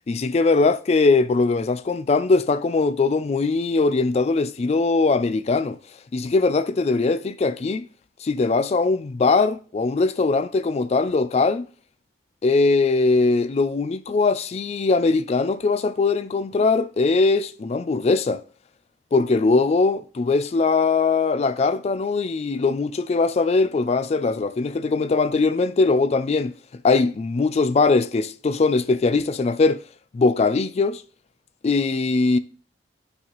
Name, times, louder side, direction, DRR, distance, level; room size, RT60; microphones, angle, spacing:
voice 1, 0.1-5.8 6.1-7.9 8.2-11.7 12.4-18.4 19.1-26.5 26.8-29.8 30.1-31.0 31.6-32.4, left 3 dB, 35° left, 0.3 m, -21 dB
10.0 x 4.1 x 3.0 m
head